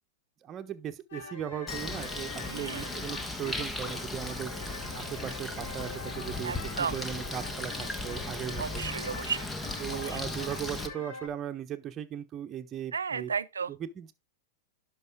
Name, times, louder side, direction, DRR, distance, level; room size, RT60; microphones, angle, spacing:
voice 1, 0.4-4.5 4.9-8.8 9.8-13.3 13.7-14.1, right 10 dB, 30° right, 1.2 m, -38 dB
sound 1, 1.1-11.3, left 4 dB, 70° left, 3.6 m, -44 dB
sound 2, 1.7-4.5, left 10 dB, 55° left, 1.7 m, -48 dB
Bird, 1.7-10.9, left 2 dB, 10° left, 1.4 m, -37 dB
voice 2, 2.4-2.9 6.4-7.0 8.6-9.5 9.9-10.2 12.9-13.7, right 6 dB, 85° right, 0.6 m, -34 dB
11.0 x 5.6 x 3.7 m
hypercardioid pair, 100°, 0 cm